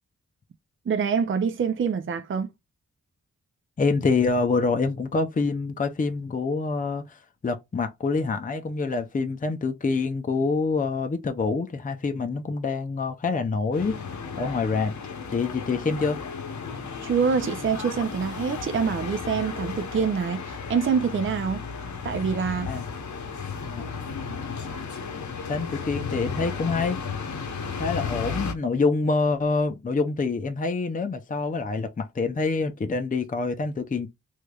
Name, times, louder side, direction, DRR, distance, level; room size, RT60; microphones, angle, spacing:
voice 1, 0.9-2.5 17.0-21.6 22.0-22.7, right 6 dB, 40° right, 0.5 m, -25 dB
voice 2, 3.8-13.9 14.4-15.0 15.3-16.2 22.7-22.8 23.6-23.8 25.5-27.0 27.8-34.1, left 4 dB, 25° left, 0.6 m, -26 dB
sound 1, 13.7-28.5, left 5 dB, 70° left, 0.9 m, -34 dB
3.3 x 3.1 x 2.3 m
wide cardioid pair, 85°, 30 cm